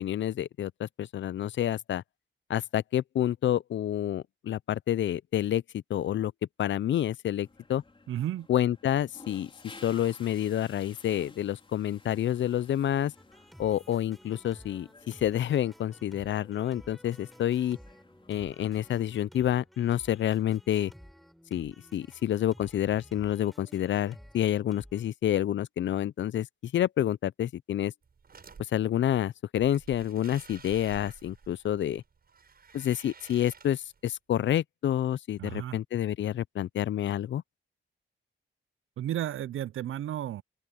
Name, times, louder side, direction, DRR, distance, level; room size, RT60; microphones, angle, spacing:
voice 1, 0.0-2.0 2.5-6.3 6.6-7.8 8.5-9.5 9.8-13.1 13.6-17.8 18.3-20.9 21.5-27.9 28.7-32.0 32.7-37.4, left 11 dB, 70° left, 0.4 m, -28 dB
sound 1, 7.4-19.1, left 3 dB, 25° left, 4.3 m, -55 dB
voice 2, 8.1-8.5 35.4-35.8 39.0-40.4, right 12 dB, 90° right, 0.5 m, -33 dB
sound 2, 13.2-25.0, equal, ahead, 3.9 m, -54 dB
sound 3, 28.0-28.6 29.6-34.1, right 5 dB, 50° right, 7.4 m, -51 dB
open air
wide cardioid pair, 120°, 20 cm